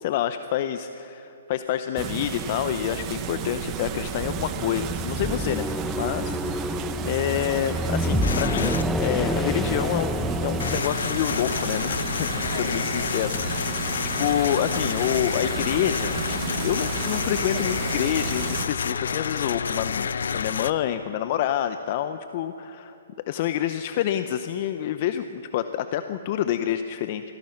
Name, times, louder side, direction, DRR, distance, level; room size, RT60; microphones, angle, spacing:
voice 1, 0.0-5.6 6.0-6.8 7.0-16.2 16.6-23.0 23.3-27.4, left 11 dB, 45° left, 10 dB, 0.8 m, -28 dB
sound 1, 2.0-18.7, right 9 dB, 30° right, 1.1 m, -33 dB
sound 2, 4.2-10.8, equal, ahead, 0.7 m, -28 dB
sound 3, 8.2-8.8 10.6-20.7, left 6 dB, 75° left, 0.7 m, -29 dB
26.5 x 17.0 x 6.0 m, 2.9 s
hypercardioid pair, 135°, 0 cm